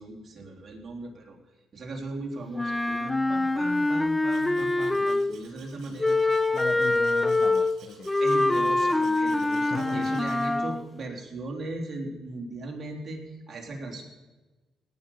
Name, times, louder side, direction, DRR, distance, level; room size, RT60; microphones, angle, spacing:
voice 1, 0.0-1.4 1.7-6.2 8.2-14.0, right 2 dB, 45° right, -1 dB, 3.6 m, -37 dB
Wind instrument woodwind instrument, 2.5-5.4 6.0-10.8, left 2 dB, 15° left, 0.5 m, -25 dB
Domestic sounds home sounds, 4.3-10.5, right 5 dB, 75° right, 5.3 m, -54 dB
voice 2, 6.5-8.2 9.5-10.2, left 6 dB, 50° left, 9 dB, 0.9 m, -38 dB
18.0 x 6.4 x 8.6 m, 1.2 s
cardioid pair, 90°, 0 cm